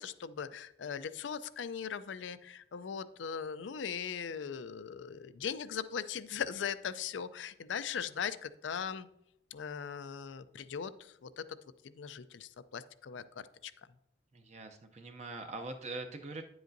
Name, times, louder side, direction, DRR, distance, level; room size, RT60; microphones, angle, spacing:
voice 1, 0.0-9.1 9.5-11.4 11.8-13.2 13.6-13.7, left 7 dB, 90° left, 14 dB, 0.4 m, -39 dB
voice 2, 14.3-16.4, right 2 dB, 40° right, 5 dB, 0.5 m, -43 dB
9.8 x 7.8 x 2.6 m, 0.79 s
head